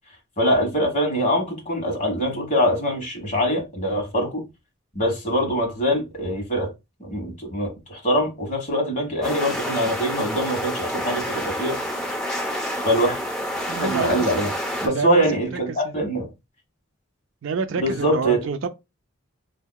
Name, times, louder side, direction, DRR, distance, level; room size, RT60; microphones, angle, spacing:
voice 1, 0.4-4.4 4.9-6.7 7.0-11.8 12.8-13.2 13.8-14.5 14.8-16.3 17.8-18.4, equal, 35° left, 1.3 m, -23 dB
sound 1, 9.2-14.9, equal, 5° left, 0.6 m, -28 dB
voice 2, 13.7-14.5 14.8-15.4 15.7-15.9 17.4-18.7, right 5 dB, 65° right, 0.4 m, -28 dB
4.6 x 2.7 x 2.2 m
head